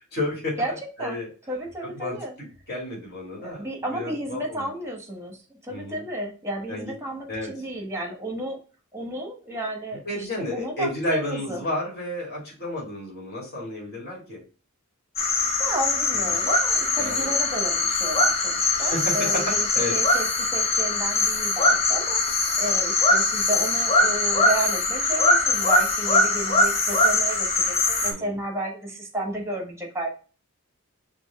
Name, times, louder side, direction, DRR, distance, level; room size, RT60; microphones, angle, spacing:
voice 1, 0.1-1.3 1.8-4.7 5.7-6.0 6.7-6.9 7.3-7.5 10.0-14.4 16.1-16.4 17.0-17.3 18.8-20.0 28.0-28.3, left 1 dB, 50° left, -2 dB, 2.4 m, -32 dB
voice 2, 1.5-2.3 3.4-8.6 8.9-11.6 15.6-22.2 22.6-30.1, right 1 dB, 15° right, 2 dB, 1.1 m, -32 dB
sound 1, 15.2-28.1, left 2 dB, 30° left, 0.9 m, -22 dB
5.1 x 2.6 x 3.5 m, 0.36 s
head